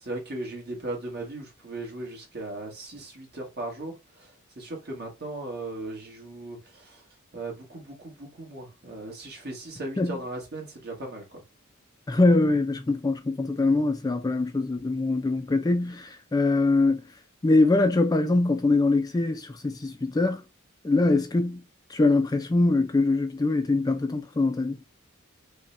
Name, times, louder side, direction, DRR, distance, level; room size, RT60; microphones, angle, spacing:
voice 1, 0.0-3.9 4.6-7.0 7.3-11.4, right 2 dB, 50° right, 1.5 m, -37 dB
voice 2, 12.1-17.0 17.4-20.4 20.8-21.6 21.9-24.8, left 2 dB, 20° left, 0.3 m, -23 dB
5.1 x 2.2 x 2.5 m
head